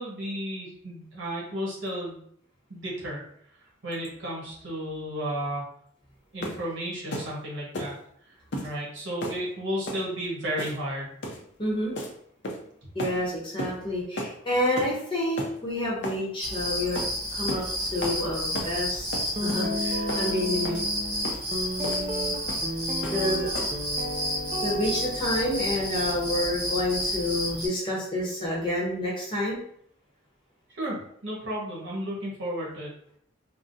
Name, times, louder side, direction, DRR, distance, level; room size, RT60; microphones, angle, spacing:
voice 1, 0.0-2.2 2.7-3.2 3.8-5.6 6.3-7.9 8.6-11.1 20.5-20.8 30.7-31.0 31.2-32.9, equal, 70° right, -5 dB, 1.3 m, -33 dB
sound 1, 6.4-6.7 7.1-7.3 7.7-8.0 8.5-8.7 9.2-9.4 9.9-10.0 10.6-10.9 11.2-11.4 11.9-12.1 12.4-12.7 13.0-13.2 13.6-13.8 14.2-14.4 14.8-15.0 15.4-15.5 16.0-16.2 16.9-17.1 17.5-17.7 18.0-18.2 18.5-18.8 19.1-19.7 20.1-20.3 20.6-20.8 21.2-21.4 21.8-22.1 22.5-22.7 23.0-23.2 23.5-23.8, left 1 dB, 60° left, 0.5 m, -34 dB
voice 2, 11.6-12.0 12.9-20.8 23.1-23.6 24.6-29.6, left 1 dB, 25° left, -5 dB, 0.8 m, -29 dB
sound 2, 16.4-27.7, equal, 50° right, 1.3 m, -31 dB
Guitar, 19.4-27.5, left 1 dB, 30° right, 0.3 m, -34 dB
3.6 x 2.1 x 2.6 m, 0.67 s
head